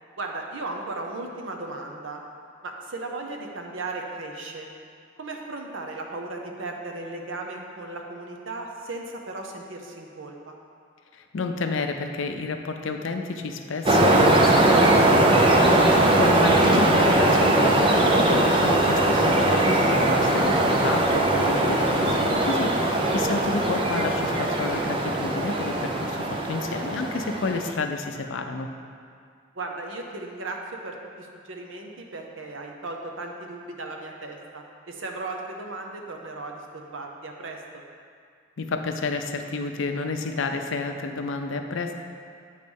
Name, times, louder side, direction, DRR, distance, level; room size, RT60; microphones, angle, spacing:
voice 1, 0.2-2.2 2.6-4.7 5.2-10.5 23.1-23.3 29.5-37.6, right 2 dB, 75° right, 2 dB, 0.7 m, -36 dB
voice 2, 11.1-28.7 38.6-41.9, left 3 dB, 75° left, 5 dB, 0.5 m, -30 dB
sound 1, 13.9-27.7, right 1 dB, 25° right, 0.4 m, -20 dB
8.3 x 3.2 x 5.3 m, 2.2 s
head